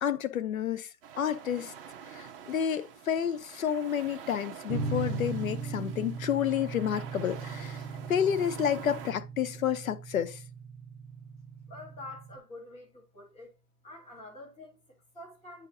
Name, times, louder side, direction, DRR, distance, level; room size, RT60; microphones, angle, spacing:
voice 1, 0.0-0.9 1.2-1.7 2.1-7.8 8.1-10.4, left 9 dB, 60° left, 1.0 m, -30 dB
sound 1, 1.0-9.1, right 8 dB, 35° right, 1.1 m, -47 dB
sound 2, 4.7-12.4, right 4 dB, 10° right, 1.3 m, -38 dB
voice 2, 11.7-13.6 13.8-15.7, left 2 dB, 10° left, 2.5 m, -47 dB
9.4 x 5.0 x 2.8 m
hypercardioid pair, 140°, 47 cm